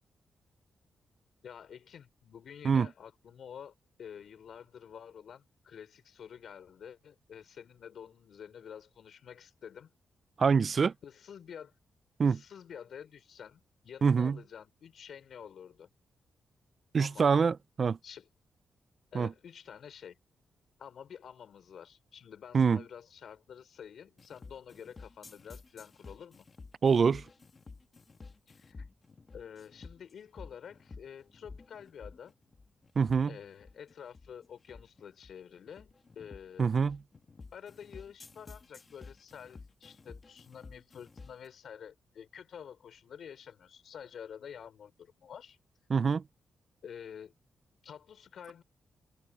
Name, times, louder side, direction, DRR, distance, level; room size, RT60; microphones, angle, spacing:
voice 1, 1.4-3.7 4.0-9.9 10.6-11.7 12.2-15.9 17.0-17.3 18.0-18.3 19.1-20.2 20.8-26.5 28.5-28.9 29.3-32.3 33.2-36.7 37.5-45.6 46.8-47.3 47.8-48.6, left 8 dB, 70° left, 4.5 m, -49 dB
voice 2, 10.4-10.9 12.2-12.4 14.0-14.4 16.9-18.0 19.1-19.3 22.5-22.8 26.8-27.2 33.0-33.3 36.6-37.0 45.9-46.2, right 5 dB, 45° right, 0.4 m, -25 dB
sound 1, 24.2-41.5, left 4 dB, 35° left, 1.8 m, -52 dB
cardioid pair, 105°, 0 cm